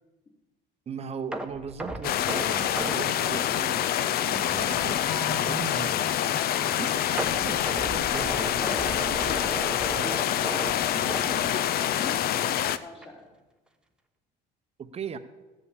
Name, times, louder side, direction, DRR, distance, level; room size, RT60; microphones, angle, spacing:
voice 1, 0.9-6.2 6.6-9.2 11.3-11.5 14.8-15.2, right 6 dB, 30° right, 10 dB, 0.8 m, -39 dB
sound 1, 1.3-4.4 4.7-4.8 5.3-5.4 7.2-12.1 12.4-12.6 13.0-13.1, right 1 dB, 5° right, 0.9 m, -36 dB
sound 2, 2.0-12.8, left 11 dB, 50° left, 0.5 m, -26 dB
sound 3, 5.1-8.0, left 1 dB, 80° left, 1.9 m, -43 dB
voice 2, 8.6-10.2 10.9-12.2 12.8-13.3, left 2 dB, 30° left, -5 dB, 2.9 m, -42 dB
14.5 x 5.7 x 8.1 m, 1.2 s
cardioid pair, 130°, 20 cm